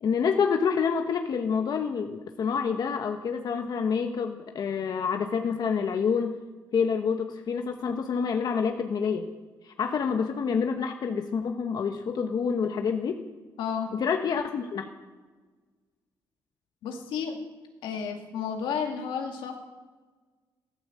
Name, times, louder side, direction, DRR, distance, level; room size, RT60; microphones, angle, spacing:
voice 1, 0.0-6.4 6.7-9.3 9.6-13.2 13.9-14.9, left 6 dB, 55° left, 5 dB, 1.2 m, -27 dB
voice 2, 13.6-13.9 16.8-17.4 17.8-19.6, left 6 dB, 85° left, 4 dB, 2.2 m, -32 dB
14.5 x 13.0 x 7.6 m, 1.4 s
cardioid pair, 85°, 8 cm